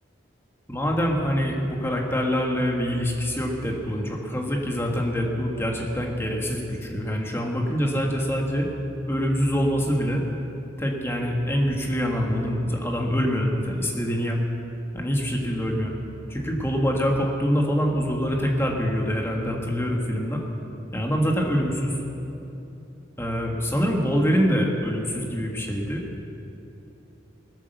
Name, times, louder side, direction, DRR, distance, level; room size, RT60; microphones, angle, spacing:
voice 1, 0.7-8.7 9.1-10.2 10.8-14.4 14.9-15.9 16.3-20.4 20.9-22.0 23.2-26.0, equal, 15° left, 0 dB, 1.6 m, -25 dB
19.5 x 8.5 x 6.8 m, 2.9 s
head